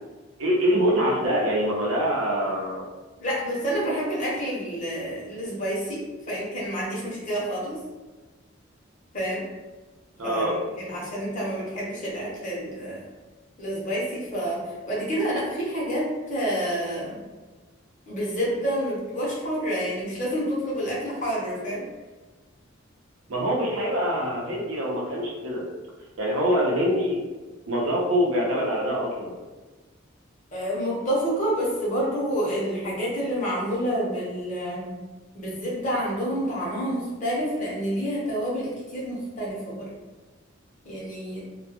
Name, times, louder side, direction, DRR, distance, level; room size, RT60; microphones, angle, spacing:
voice 1, 0.4-2.9 10.2-10.5 23.3-25.6 26.2-27.2 27.7-29.4, equal, 85° right, -2 dB, 0.6 m, -24 dB
voice 2, 3.2-7.8 9.1-9.4 10.2-13.1 13.6-17.2 18.1-21.8 30.5-34.9 35.3-39.9 40.8-41.4, equal, 40° left, -5 dB, 0.8 m, -28 dB
2.2 x 2.2 x 2.8 m, 1.2 s
head